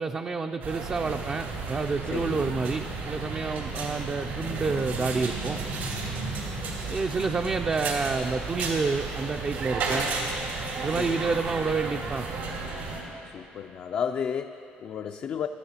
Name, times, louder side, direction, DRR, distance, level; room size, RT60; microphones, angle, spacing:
voice 1, 0.0-5.6 6.9-10.1 10.8-12.3, right 4 dB, 30° right, 4 dB, 0.4 m, -29 dB
sound 1, 0.6-13.0, right 3 dB, 90° right, 2.9 m, -33 dB
voice 2, 2.1-2.5 10.9-11.4 13.3-15.5, left 7 dB, 50° left, 6 dB, 0.4 m, -33 dB
19.5 x 13.5 x 2.9 m, 2.8 s
cardioid pair, 100°, 4 cm